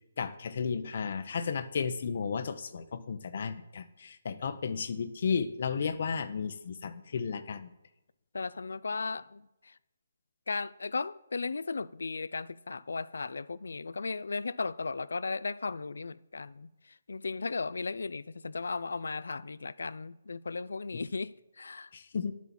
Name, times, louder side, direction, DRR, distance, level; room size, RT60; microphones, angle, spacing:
voice 1, 0.2-7.7 20.9-21.0 21.9-22.3, left 6 dB, 50° left, 0.8 m, -33 dB
voice 2, 8.3-9.7 10.5-16.7 17.1-21.9, left 4 dB, 85° left, 0.5 m, -36 dB
10.5 x 6.2 x 7.2 m
hypercardioid pair, 170°, 0 cm